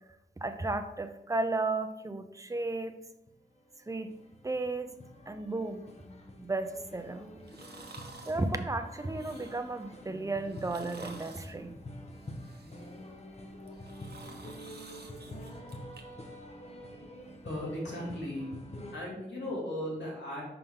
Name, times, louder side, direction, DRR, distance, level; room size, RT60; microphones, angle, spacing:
voice 1, 0.4-3.0 3.9-4.1 4.4-4.9 5.3-5.9 6.4-7.3 8.3-11.7, right 2 dB, 15° right, 9 dB, 0.5 m, -34 dB
sound 1, 3.3-18.9, left 1 dB, 35° left, 1.0 m, -47 dB
sound 2, 7.4-8.4 9.0-9.8 10.5-11.5 12.1-13.1 13.6-16.0 16.4-16.5, right 3 dB, 65° right, 0.9 m, -51 dB
voice 2, 17.4-18.5 18.9-20.4, left 1 dB, 80° left, -5 dB, 2.6 m, -36 dB
5.7 x 5.3 x 3.8 m, 0.87 s
wide cardioid pair, 90°, 18 cm